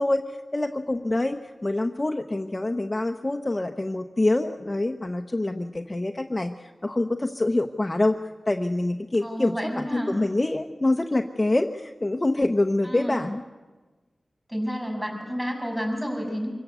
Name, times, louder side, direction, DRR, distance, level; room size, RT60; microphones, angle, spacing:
voice 1, 0.0-8.2 8.5-13.4, left 2 dB, 25° left, 5 dB, 0.9 m, -26 dB
voice 2, 9.2-10.2 12.8-13.2 14.5-16.5, equal, 10° right, 2 dB, 6.7 m, -30 dB
25.0 x 15.5 x 8.3 m, 1.3 s
wide cardioid pair, 70°, 0 cm